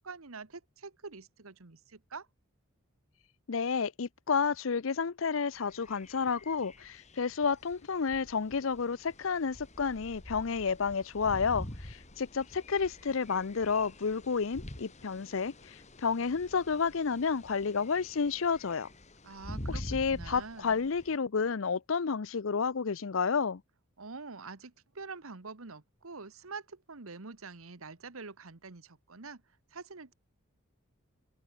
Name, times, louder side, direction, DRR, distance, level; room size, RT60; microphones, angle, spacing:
voice 1, 0.0-2.3 19.2-20.9 24.0-29.4 29.7-30.1, right 4 dB, 80° right, 1.4 m, -46 dB
voice 2, 3.5-18.9 19.7-23.6, left 5 dB, 65° left, 0.6 m, -31 dB
sound 1, 5.5-21.2, left 1 dB, 35° left, 2.9 m, -47 dB
head